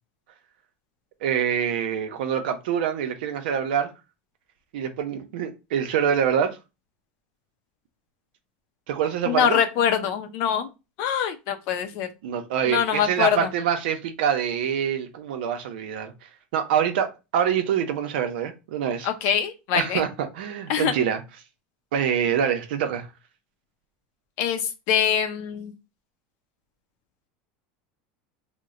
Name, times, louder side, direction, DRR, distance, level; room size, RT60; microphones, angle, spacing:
voice 1, 1.2-3.9 4.7-6.6 8.9-9.6 12.2-16.1 16.5-19.1 19.7-21.2 21.9-23.1, right 8 dB, 80° right, 0.7 m, -25 dB
voice 2, 9.3-10.7 11.0-12.1 12.7-13.5 19.0-20.0 20.7-20.9 24.4-25.7, left 8 dB, 55° left, 0.6 m, -24 dB
2.9 x 2.1 x 3.7 m
supercardioid pair, 135°, 5 cm